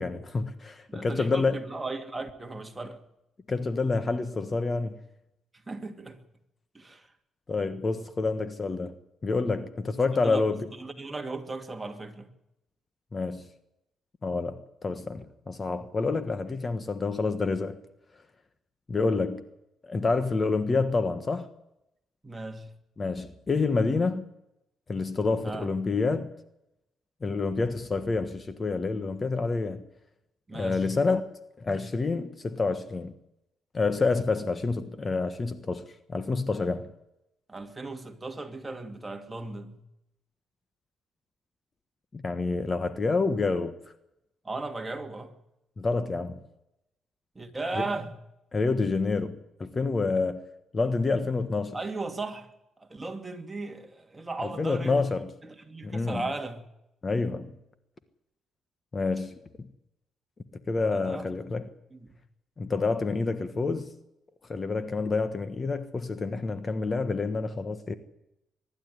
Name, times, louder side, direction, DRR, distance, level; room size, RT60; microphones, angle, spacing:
voice 1, 0.0-1.6 3.5-4.9 7.5-9.0 9.2-10.6 13.1-13.5 14.2-17.8 18.9-19.4 19.8-21.5 23.0-24.2 24.9-26.3 27.2-29.8 30.5-31.2 31.6-33.1 33.7-36.9 42.1-43.7 45.8-46.4 47.8-47.9 48.5-50.4 50.7-51.8 54.6-55.3 55.8-56.2 57.0-57.5 58.9-59.3 60.7-61.7 62.6-63.9 64.5-67.9, left 3 dB, 30° left, 1.4 m, -28 dB
voice 2, 0.9-3.0 5.7-6.2 6.7-7.1 10.1-12.3 22.2-22.7 25.4-25.7 30.5-30.9 37.5-39.8 44.4-45.3 47.3-48.1 51.7-52.5 52.8-55.1 55.4-56.6 60.9-61.3 61.9-62.1, right 2 dB, 20° right, 2.6 m, -36 dB
23.0 x 12.0 x 9.6 m
cardioid pair, 90°, 0 cm